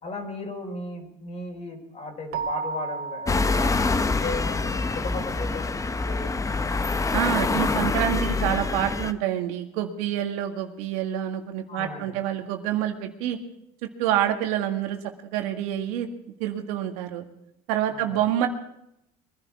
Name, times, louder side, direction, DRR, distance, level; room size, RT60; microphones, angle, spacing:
voice 1, 0.0-6.7 11.7-12.2 17.9-18.2, left 2 dB, 40° left, 4 dB, 4.3 m, -36 dB
Keyboard (musical), 2.3-4.8, right 5 dB, 60° right, 0.7 m, -34 dB
sound 1, 3.3-9.1, left 3 dB, 15° left, 0.8 m, -25 dB
voice 2, 7.1-13.4 14.0-16.1 16.4-17.2 17.7-18.5, right 11 dB, 80° right, 4 dB, 1.8 m, -27 dB
23.0 x 11.0 x 4.7 m, 0.80 s
supercardioid pair, 85°, 18 cm